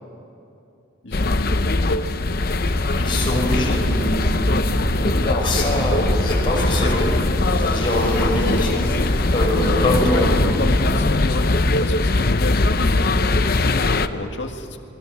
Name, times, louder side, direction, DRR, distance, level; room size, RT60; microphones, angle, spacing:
voice 1, 1.0-1.6 10.1-14.8, left 2 dB, 65° left, 4 dB, 1.9 m, -30 dB
sound 1, 1.1-14.1, left 2 dB, 50° left, 0.8 m, -21 dB
Ocean, 2.1-12.0, equal, 10° left, 7.3 m, -27 dB
voice 2, 3.0-7.3 7.6-10.6, left 1 dB, 25° left, -1 dB, 5.6 m, -24 dB
27.5 x 22.5 x 6.7 m, 2.8 s
head